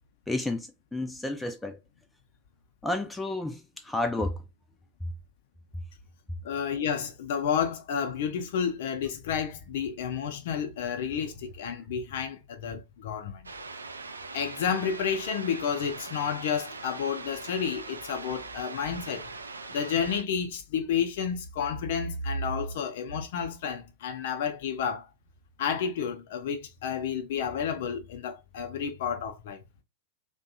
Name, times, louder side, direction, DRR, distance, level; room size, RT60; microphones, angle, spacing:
voice 1, 0.3-1.8 2.8-4.4, left 2 dB, 5° left, 0.4 m, -31 dB
voice 2, 6.4-13.5 14.3-19.3 19.7-25.1 25.6-29.6, left 7 dB, 55° left, 0.5 m, -31 dB
sound 1, 13.4-20.2, right 3 dB, 75° right, 0.3 m, -41 dB
2.6 x 2.2 x 2.5 m
figure-of-eight pair, 90°, 0 cm